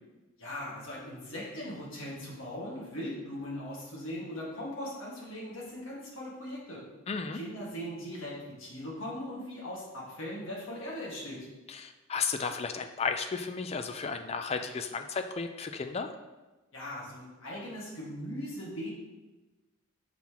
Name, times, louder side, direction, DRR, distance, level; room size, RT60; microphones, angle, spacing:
voice 1, 0.4-6.8 7.3-11.5 16.7-18.9, left 1 dB, 65° left, -5 dB, 1.9 m, -39 dB
voice 2, 7.1-7.4 11.7-16.1, left 5 dB, 30° left, 7 dB, 0.3 m, -34 dB
5.9 x 5.5 x 3.0 m, 1.1 s
head